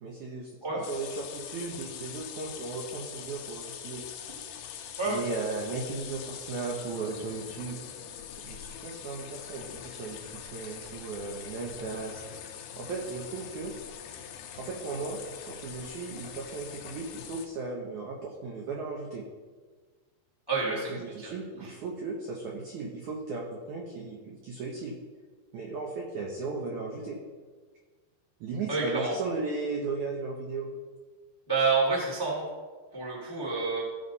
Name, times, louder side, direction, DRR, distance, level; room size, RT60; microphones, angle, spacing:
voice 1, 0.0-0.5 0.9-4.0 5.1-7.8 8.4-12.2 12.8-13.7 14.6-19.2 20.7-24.9 25.5-27.2 28.4-30.7, right 4 dB, 85° right, -1 dB, 1.7 m, -36 dB
sound 1, 0.8-17.5, left 8 dB, 75° left, 2.5 m, -43 dB
voice 2, 20.5-20.9 21.2-21.3 28.7-29.2 31.5-32.4 32.9-33.8, right 4 dB, 40° left, -3 dB, 0.3 m, -28 dB
16.0 x 5.5 x 4.1 m, 1.5 s
omnidirectional pair, 5.0 m